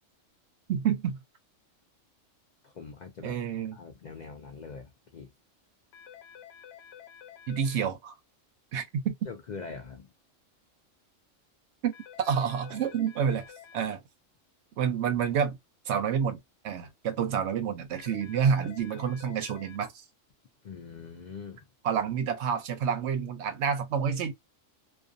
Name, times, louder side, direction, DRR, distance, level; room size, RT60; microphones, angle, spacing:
voice 1, 0.7-1.2 3.2-3.7 7.5-8.1 8.7-9.1 11.8-11.9 12.2-13.5 13.7-14.0 14.8-15.6 15.9-16.4 16.6-20.0 21.8-24.3, right 7 dB, 65° right, 0.8 m, -28 dB
voice 2, 2.6-3.4 3.7-5.3 9.3-10.1 13.8-13.9 20.6-21.6, left 5 dB, 80° left, 0.4 m, -43 dB
sound 1, 5.9-7.8 11.9-13.8 17.9-19.8, left 8 dB, 65° left, 0.8 m, -50 dB
2.4 x 2.2 x 2.4 m
omnidirectional pair, 1.3 m